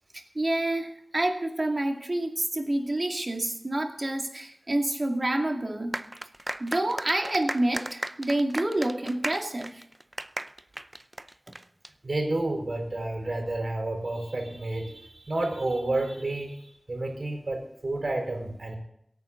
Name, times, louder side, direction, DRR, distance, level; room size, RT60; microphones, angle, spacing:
voice 1, 0.1-6.0 6.6-9.8, right 1 dB, 50° right, 3 dB, 2.3 m, -28 dB
sound 1, 5.9-11.9, right 1 dB, 30° right, 0.5 m, -36 dB
voice 2, 12.0-18.7, right 2 dB, 70° right, 2 dB, 4.5 m, -30 dB
23.0 x 9.1 x 3.9 m, 0.74 s
wide cardioid pair, 50°, 0 cm